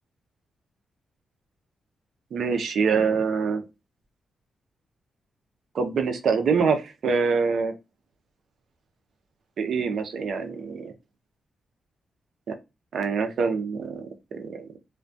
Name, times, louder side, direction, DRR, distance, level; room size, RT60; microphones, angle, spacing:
voice 1, 2.3-3.6 5.7-7.7 9.6-10.9 12.5-12.6 12.9-14.8, right 5 dB, 65° right, 6 dB, 0.5 m, -25 dB
2.2 x 2.1 x 2.6 m, 0.25 s
cardioid pair, 105°, 0 cm